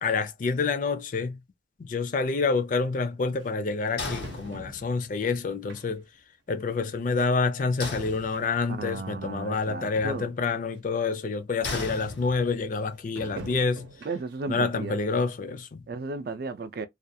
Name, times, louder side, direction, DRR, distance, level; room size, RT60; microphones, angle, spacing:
voice 1, 0.0-1.4 1.8-6.0 6.5-13.9 14.5-15.8, left 4 dB, 45° left, 0.4 m, -28 dB
sound 1, 2.3-2.4 3.4-3.5 4.2-5.2 5.7-6.2 6.6-6.7 7.7-7.8 8.0-8.1 8.9-9.0 9.3-9.4 9.7-9.8 10.0-10.4 11.0-11.1 13.2-14.5 14.9-15.0 15.5-15.6, right 3 dB, 85° right, 0.7 m, -45 dB
sound 2, 4.0-5.1 7.8-8.8 11.6-12.7, left 3 dB, 90° left, 1.0 m, -36 dB
voice 2, 8.7-10.3 14.0-15.0 15.9-16.9, right 3 dB, 55° right, 0.4 m, -34 dB
2.4 x 2.2 x 2.6 m
head